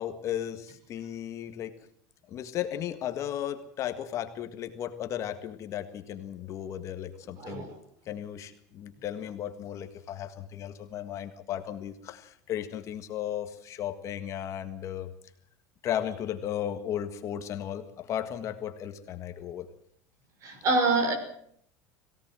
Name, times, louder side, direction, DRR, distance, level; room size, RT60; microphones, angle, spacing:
voice 1, 0.0-1.7 2.3-7.7 8.0-15.1 15.8-19.7, left 10 dB, 35° left, 1.7 m, -35 dB
voice 2, 7.4-7.7 20.4-21.1, right 3 dB, 35° right, 5.9 m, -25 dB
22.0 x 17.0 x 7.7 m
cardioid pair, 155°, 9 cm